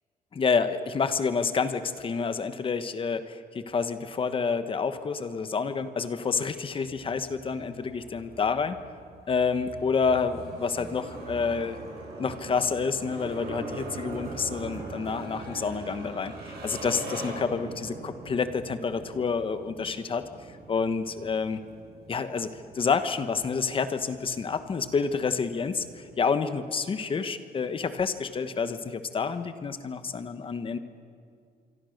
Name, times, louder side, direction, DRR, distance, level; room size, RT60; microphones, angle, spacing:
voice 1, 0.3-8.8 9.3-11.8 12.2-20.3 20.7-21.6 22.1-30.8, left 5 dB, 35° left, 10 dB, 1.2 m, -28 dB
sound 1, 6.8-26.1, right 3 dB, 80° right, 7.3 m, -42 dB
27.0 x 23.5 x 6.6 m, 2.3 s
wide cardioid pair, 170°, 16 cm